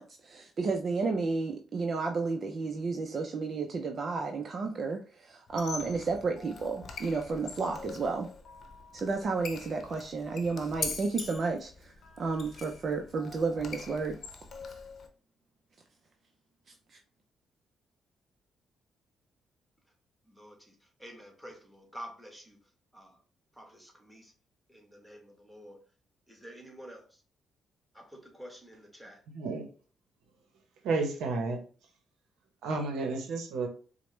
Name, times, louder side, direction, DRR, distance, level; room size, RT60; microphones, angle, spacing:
voice 1, 0.0-8.3 8.9-14.2 16.9-17.0, right 4 dB, 50° right, 0.5 m, -32 dB
Squeak, 5.5-15.1, left 4 dB, 55° left, 0.7 m, -43 dB
voice 2, 20.3-20.7 21.0-22.6 22.9-23.2 23.6-24.3 24.7-25.8 26.3-27.0 27.9-29.2, equal, ahead, 1.3 m, -49 dB
voice 3, 29.3-29.7 30.8-31.6 32.6-33.7, right 3 dB, 85° right, 0.8 m, -31 dB
4.6 x 2.1 x 3.1 m
supercardioid pair, 65°, 0 cm